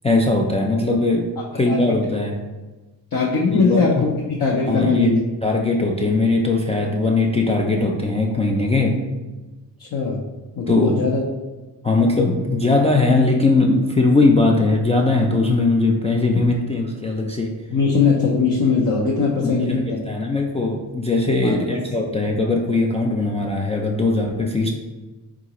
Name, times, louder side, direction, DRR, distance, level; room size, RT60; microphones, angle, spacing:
voice 1, 0.0-2.4 3.5-4.1 4.7-9.1 10.7-11.1 11.8-17.6 19.4-24.7, left 2 dB, 15° left, -1 dB, 0.3 m, -20 dB
voice 2, 3.1-5.2 9.8-10.2 10.6-11.2 17.7-20.0 21.4-21.6, left 4 dB, 50° left, -2 dB, 0.6 m, -20 dB
3.8 x 2.4 x 2.9 m, 1.2 s
cardioid pair, 60°, 43 cm